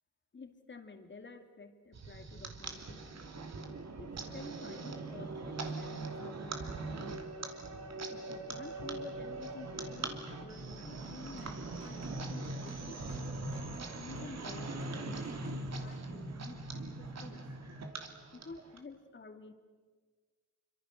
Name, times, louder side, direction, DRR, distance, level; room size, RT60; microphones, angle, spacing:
voice 1, 0.3-3.3 4.0-7.3 8.1-13.0 14.0-17.4 18.3-19.5, left 4 dB, 35° left, 6 dB, 2.7 m, -51 dB
sound 1, 1.9-18.8, right 2 dB, 55° right, 2.9 m, -41 dB
sound 2, 11.0-16.0, right 2 dB, 25° right, 6.0 m, -53 dB
27.0 x 25.0 x 6.7 m, 1.5 s
cardioid pair, 110°, 32 cm